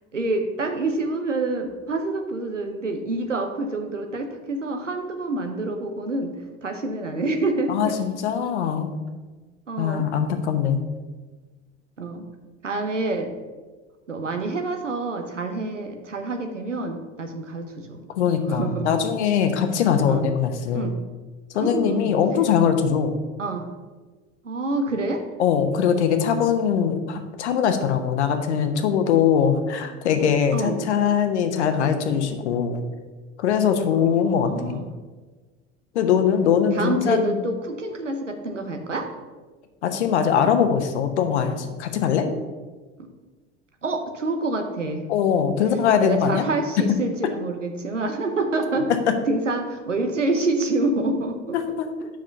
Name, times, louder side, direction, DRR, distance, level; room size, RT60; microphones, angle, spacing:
voice 1, 0.1-6.3 6.6-8.0 9.7-10.0 12.0-12.3 12.6-13.3 14.1-18.0 18.5-19.0 20.1-20.2 20.7-21.0 21.6-22.1 23.4-23.7 24.4-25.2 30.5-30.8 34.0-34.9 36.8-39.1 43.8-45.1 46.0-48.9 49.3-52.1, right 2 dB, 85° right, 5 dB, 0.9 m, -27 dB
voice 2, 7.7-8.9 9.8-10.8 18.1-20.9 21.5-23.1 25.4-32.8 33.4-34.7 35.9-37.4 39.8-42.2 45.1-46.4 51.5-51.9, left 7 dB, 65° left, 7 dB, 0.9 m, -22 dB
5.7 x 5.0 x 6.4 m, 1.3 s
figure-of-eight pair, 70°, 36 cm